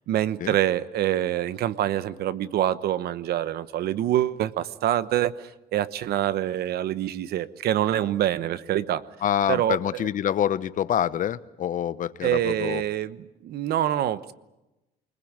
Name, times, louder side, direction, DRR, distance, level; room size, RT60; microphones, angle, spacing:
voice 1, 0.1-9.0 9.5-10.0 12.2-14.3, right 12 dB, 70° right, 15 dB, 1.1 m, -26 dB
voice 2, 9.2-12.8, left 10 dB, 50° left, 16 dB, 0.9 m, -26 dB
24.0 x 21.0 x 8.8 m, 0.98 s
cardioid pair, 110°, 17 cm